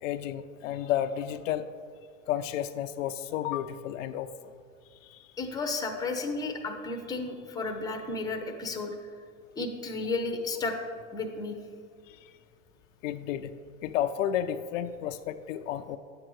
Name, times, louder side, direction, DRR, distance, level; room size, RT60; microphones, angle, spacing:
voice 1, 0.0-1.7 2.3-4.3 5.1-5.2 10.6-10.7 12.1-12.3 13.0-13.5 13.8-16.0, left 11 dB, 70° left, 9 dB, 0.5 m, -32 dB
voice 2, 5.4-8.9 9.6-10.8 11.1-11.6, left 3 dB, 10° left, 4 dB, 0.7 m, -33 dB
10.0 x 7.6 x 3.1 m, 2.2 s
hypercardioid pair, 115°, 40 cm